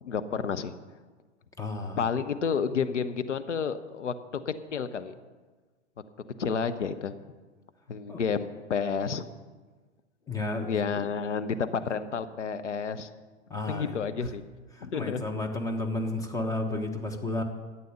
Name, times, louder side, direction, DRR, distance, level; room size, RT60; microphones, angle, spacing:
voice 1, 0.0-0.7 2.0-4.1 4.5-5.2 6.4-7.1 7.9-9.2 10.7-13.1 13.7-14.4 14.8-15.2, left 6 dB, 80° left, 11 dB, 0.9 m, -30 dB
voice 2, 1.6-2.0 8.1-8.2 10.3-10.7 13.5-14.0 14.7-17.4, left 2 dB, 10° left, 3 dB, 1.4 m, -32 dB
13.0 x 8.6 x 6.8 m, 1.4 s
figure-of-eight pair, 105°, 36 cm